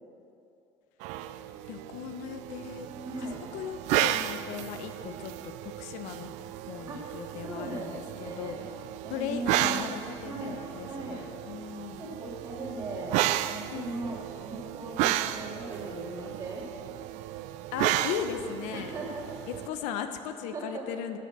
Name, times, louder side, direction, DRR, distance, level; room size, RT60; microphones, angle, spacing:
sound 1, 1.0-19.7, right 14 dB, 75° right, 0.5 m, -33 dB
voice 1, 1.7-2.9 3.2-6.3 6.7-8.5 9.1-12.1 13.7-14.0 17.7-18.9 19.5-21.2, left 8 dB, 80° left, 8 dB, 0.9 m, -37 dB
voice 2, 3.0-3.4 6.9-7.0 7.4-8.6 9.0-9.8 10.2-11.2 12.0-13.2 13.5-16.7 18.7-19.3 20.5-20.9, right 1 dB, 30° right, -4 dB, 3.1 m, -38 dB
14.0 x 9.1 x 6.8 m, 2.7 s
cardioid pair, 160°, 12 cm